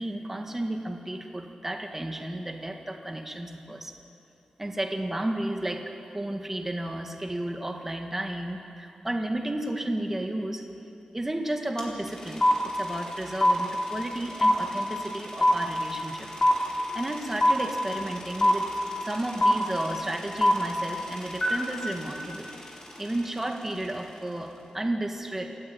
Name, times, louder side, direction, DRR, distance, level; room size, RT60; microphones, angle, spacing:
voice 1, 0.0-3.9 4.6-10.6 11.1-12.5 12.7-16.3 16.9-18.7 19.0-22.5 23.0-25.5, right 1 dB, 15° right, 3 dB, 1.9 m, -33 dB
sound 1, 11.8-11.9 12.1-23.2, left 1 dB, 30° left, 3.9 m, -24 dB
28.0 x 14.0 x 8.8 m, 2.7 s
wide cardioid pair, 150°, 2 cm